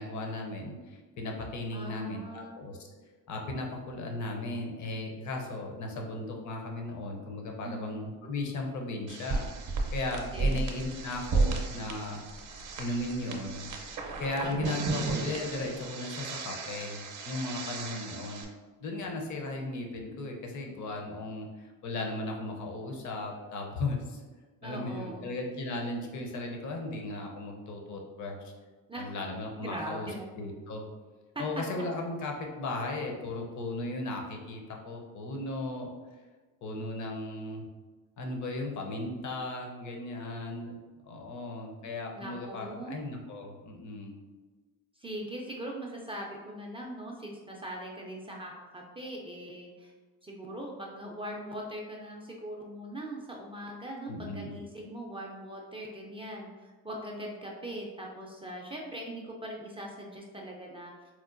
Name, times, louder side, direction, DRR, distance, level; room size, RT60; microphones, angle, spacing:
voice 1, 0.0-2.8 3.3-12.2 12.8-13.7 14.2-18.4 18.8-24.2 24.6-28.5 29.0-30.9 31.4-35.9 36.6-37.7 38.2-40.8 41.0-44.2 54.1-54.6, left 2 dB, 55° left, 1 dB, 0.7 m, -36 dB
voice 2, 1.7-2.6 7.6-8.0 10.1-10.6 24.6-25.3 28.9-29.1 29.6-30.3 31.4-31.5 42.1-43.0 45.0-49.9 50.2-61.1, right 1 dB, 15° right, -1 dB, 0.3 m, -41 dB
sound 1, 9.1-18.4, right 4 dB, 55° right, 0.6 m, -33 dB
4.4 x 2.1 x 2.5 m, 1.3 s
cardioid pair, 110°, 36 cm